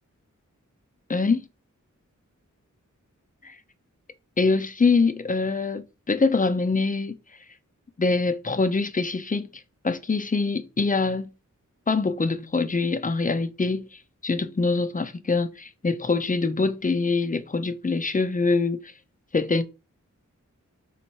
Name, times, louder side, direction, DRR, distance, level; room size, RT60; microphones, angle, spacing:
voice 1, 1.1-1.4 3.4-3.6 4.4-7.2 8.0-9.5 9.8-11.3 11.9-18.9 19.3-19.6, left 4 dB, 25° left, 0.4 m, -24 dB
4.2 x 3.3 x 3.0 m
wide cardioid pair, 65°, 31 cm